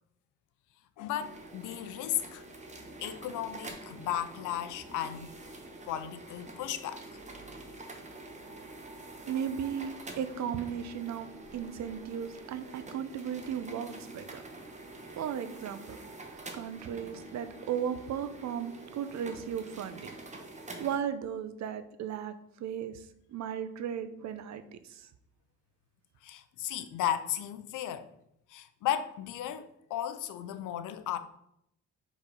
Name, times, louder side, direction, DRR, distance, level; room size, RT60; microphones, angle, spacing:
voice 1, 1.0-2.4 3.0-5.4 5.9-7.0 26.2-28.1 28.5-31.2, left 11 dB, 85° left, 0.7 m, -35 dB
sound 1, 1.2-21.0, right 2 dB, 25° right, 1.2 m, -47 dB
voice 2, 9.2-14.4 15.2-16.0 16.5-20.1 20.8-22.3 22.6-23.0 23.3-25.1, right 8 dB, 65° right, 0.7 m, -36 dB
5.1 x 4.2 x 5.1 m
cardioid pair, 90°, 30 cm